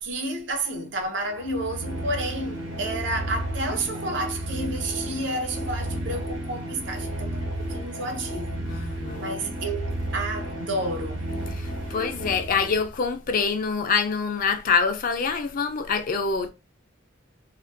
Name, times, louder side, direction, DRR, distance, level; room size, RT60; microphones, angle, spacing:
voice 1, 0.0-8.9 9.2-11.3, right 2 dB, 65° right, 0.6 m, -31 dB
sound 1, 1.3-13.0, right 1 dB, 80° right, 1.1 m, -32 dB
voice 2, 8.7-9.3 11.5-16.5, left 5 dB, 45° left, 0.4 m, -25 dB
2.4 x 2.1 x 2.5 m
head